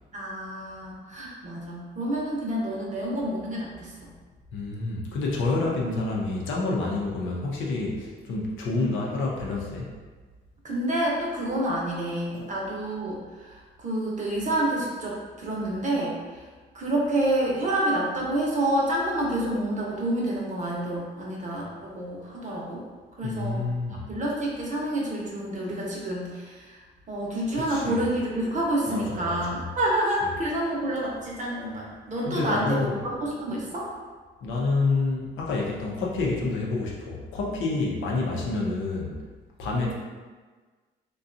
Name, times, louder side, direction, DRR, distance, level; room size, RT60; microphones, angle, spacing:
voice 1, 0.1-4.1 10.6-16.4 16.7-22.8 23.2-23.6 23.9-33.9, right 1 dB, 40° right, -4 dB, 0.7 m, -28 dB
voice 2, 4.5-9.9 12.3-12.5 23.2-24.1 27.5-28.0 28.9-29.6 32.3-33.0 34.4-39.2 39.6-39.9, left 3 dB, 80° left, -2 dB, 0.6 m, -28 dB
2.7 x 2.3 x 2.5 m, 1.4 s
cardioid pair, 90°, 20 cm